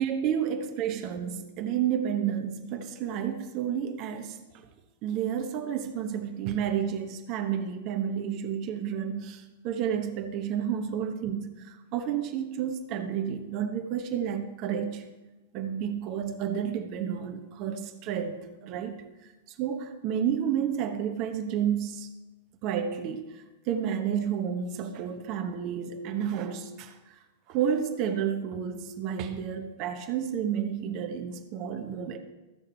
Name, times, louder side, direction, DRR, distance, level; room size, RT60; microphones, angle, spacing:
voice 1, 0.0-4.4 5.0-15.1 15.5-19.0 19.6-22.1 22.6-27.2 27.5-32.2, right 8 dB, 40° right, 0.9 m, -31 dB
15.0 x 5.1 x 4.3 m
figure-of-eight pair, 95°, 0 cm